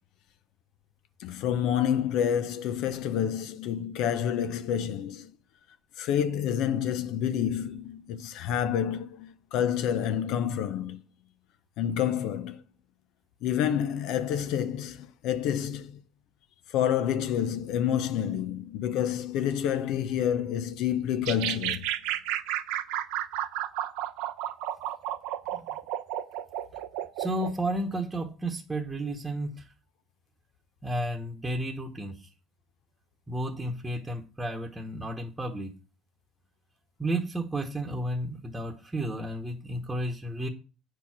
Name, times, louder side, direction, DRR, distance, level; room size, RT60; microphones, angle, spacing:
voice 1, 1.2-5.3 6.0-11.0 11.8-12.6 13.4-16.0 16.7-21.9, left 9 dB, 70° left, 0.6 m, -28 dB
sound 1, 21.3-27.5, right 12 dB, 85° right, 0.7 m, -32 dB
voice 2, 27.2-29.6 30.8-32.3 33.3-35.7 37.0-40.5, right 1 dB, 10° right, 1.1 m, -32 dB
8.6 x 4.6 x 6.0 m
cardioid pair, 115°, 0 cm